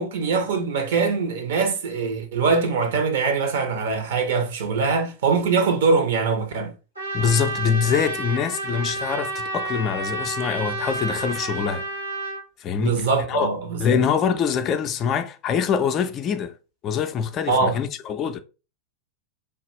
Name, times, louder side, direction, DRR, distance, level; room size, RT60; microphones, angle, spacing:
voice 1, 0.0-6.7 12.8-14.0 17.5-17.8, right 4 dB, 55° right, 0.7 m, -23 dB
Trumpet, 6.9-12.4, right 2 dB, 85° right, 1.5 m, -30 dB
voice 2, 7.1-11.9 12.6-13.5 13.8-16.5 16.8-18.4, left 7 dB, 30° left, 0.4 m, -24 dB
3.3 x 2.3 x 3.1 m
figure-of-eight pair, 90°, 0 cm